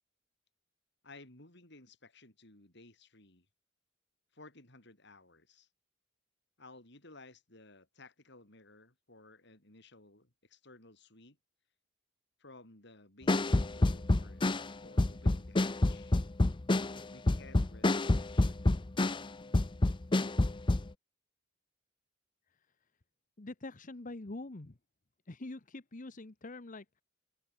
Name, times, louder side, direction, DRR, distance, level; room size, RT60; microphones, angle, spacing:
voice 1, 1.0-3.5 4.3-5.7 6.6-11.4 12.4-16.2 17.1-18.8, left 2 dB, 60° left, 7.0 m, -57 dB
sound 1, 13.3-19.3 19.5-20.9, left 2 dB, 25° left, 0.6 m, -28 dB
voice 2, 23.4-24.7 25.3-27.0, left 2 dB, 45° left, 1.0 m, -45 dB
open air
head